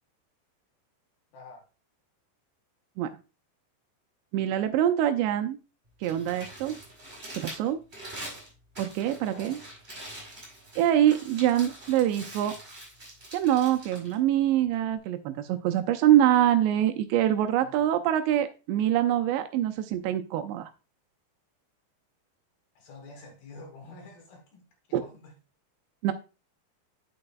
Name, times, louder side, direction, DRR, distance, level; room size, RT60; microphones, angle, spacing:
voice 1, 1.3-1.7 9.2-9.6 17.6-18.0 22.8-25.4, left 2 dB, 65° left, 2.7 m, -48 dB
voice 2, 4.3-5.6 6.0-6.8 7.4-7.8 8.8-9.6 10.8-12.5 13.3-20.7 24.9-25.0 26.0-26.1, right 11 dB, 80° right, 2.7 m, -24 dB
Crumpling crinkling, 5.9-15.0, right 1 dB, 15° right, 4.6 m, -44 dB
8.7 x 8.6 x 2.2 m
omnidirectional pair, 5.2 m